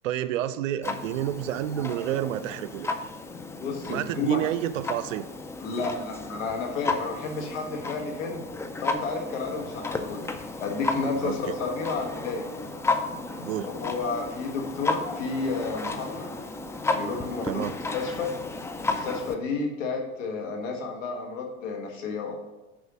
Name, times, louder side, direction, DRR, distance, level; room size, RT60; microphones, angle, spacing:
voice 1, 0.0-2.9 3.9-5.3 11.2-11.5 13.4-13.7 17.4-17.7, right 12 dB, 85° right, 14 dB, 0.6 m, -29 dB
Clock, 0.8-19.4, left 3 dB, 10° left, 0.3 m, -33 dB
voice 2, 3.6-4.4 5.6-8.4 8.8-10.3 10.6-12.5 13.6-16.3 16.9-17.7 17.9-18.3 18.8-22.3, left 4 dB, 80° left, 2 dB, 1.7 m, -31 dB
6.4 x 4.9 x 6.2 m, 1.1 s
hypercardioid pair, 100°, 38 cm